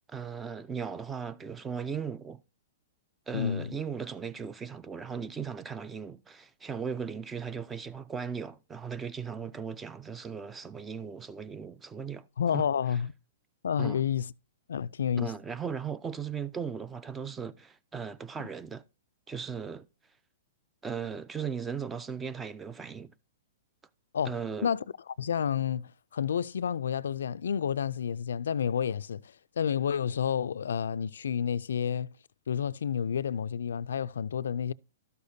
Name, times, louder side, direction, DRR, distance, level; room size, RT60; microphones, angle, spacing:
voice 1, 0.1-2.4 3.3-12.3 12.5-12.7 13.8-14.0 15.2-18.8 19.3-19.9 20.8-23.1 24.2-24.7, right 6 dB, 10° right, 0.3 m, -37 dB
voice 2, 3.3-3.7 12.4-13.1 13.6-14.3 14.7-15.3 24.1-24.4 24.6-29.2 29.6-32.1 32.5-34.7, left 8 dB, 90° left, 0.3 m, -30 dB
12.5 x 6.7 x 2.7 m
hypercardioid pair, 160°, 0 cm